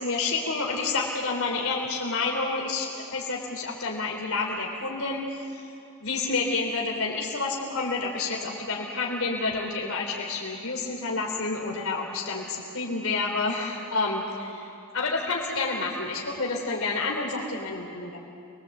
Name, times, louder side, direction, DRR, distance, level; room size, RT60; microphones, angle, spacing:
voice 1, 0.0-5.7 6.0-14.7 14.9-18.2, left 3 dB, 70° left, 0 dB, 3.6 m, -29 dB
28.0 x 22.5 x 8.0 m, 2.5 s
head